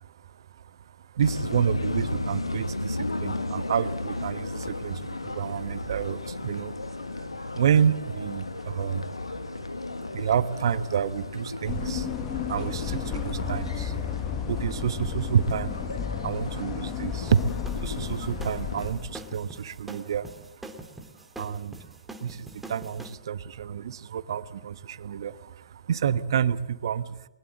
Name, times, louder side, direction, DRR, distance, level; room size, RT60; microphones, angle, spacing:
voice 1, 1.1-6.7 7.1-9.8 10.1-14.2 14.5-16.0 16.2-17.4 17.8-20.3 21.4-21.7 22.2-27.3, right 8 dB, 60° right, 15 dB, 1.1 m, -29 dB
sound 1, 1.2-18.9, left 2 dB, 85° left, 1.8 m, -35 dB
sound 2, 11.7-19.5, left 8 dB, 25° left, 1.3 m, -33 dB
sound 3, 17.3-23.1, right 2 dB, 5° right, 2.5 m, -44 dB
21.5 x 20.0 x 8.6 m, 0.93 s
figure-of-eight pair, 115°, 3 cm